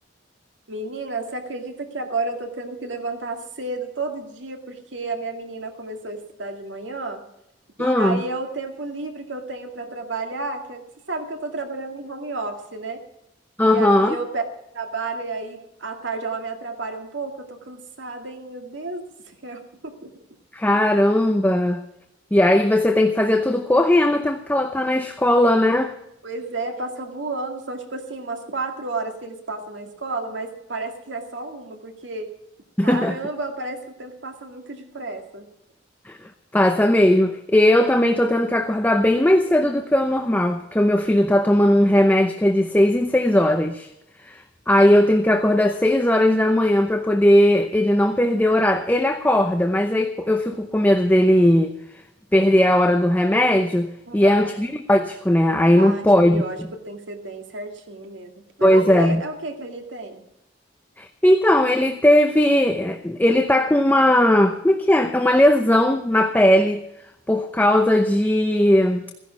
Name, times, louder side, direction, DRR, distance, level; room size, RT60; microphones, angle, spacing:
voice 1, 0.7-7.2 7.8-13.0 13.6-14.4 14.7-20.1 26.2-32.3 32.8-35.5 54.1-54.5 55.8-56.6 56.8-60.2, right 3 dB, 80° right, 2.2 m, -32 dB
voice 2, 7.8-8.2 13.6-14.2 20.5-21.8 22.3-25.9 32.8-33.1 36.1-36.2 36.5-43.9 44.3-51.7 52.3-56.4 58.6-59.2 61.0-66.8 67.3-69.0, left 1 dB, 10° left, 0.7 m, -18 dB
16.0 x 11.0 x 5.8 m
head